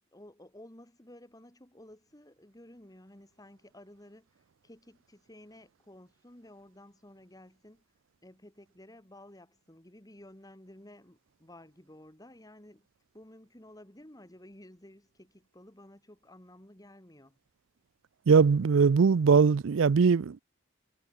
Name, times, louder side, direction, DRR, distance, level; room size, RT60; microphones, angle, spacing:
voice 1, 0.1-7.8 8.2-12.9 13.1-17.4, left 1 dB, 20° left, 2.4 m, -53 dB
voice 2, 18.3-20.4, right 5 dB, 65° right, 0.4 m, -21 dB
head